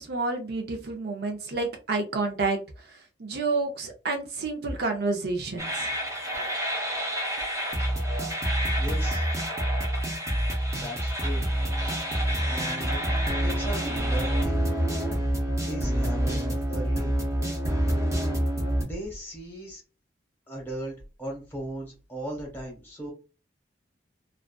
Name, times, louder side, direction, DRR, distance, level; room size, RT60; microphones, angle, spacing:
voice 1, 0.0-2.6 3.2-5.9, right 3 dB, 60° right, 4 dB, 0.5 m, -29 dB
sound 1, 5.6-18.8, right 1 dB, 15° right, 0.8 m, -27 dB
voice 2, 8.8-9.3 10.7-11.4 11.8-12.0 12.5-13.0 13.4-14.6 15.6-16.4 16.7-17.1 18.7-19.8 20.5-23.1, right 1 dB, 10° left, -1 dB, 1.0 m, -37 dB
2.4 x 2.3 x 2.2 m, 0.31 s
head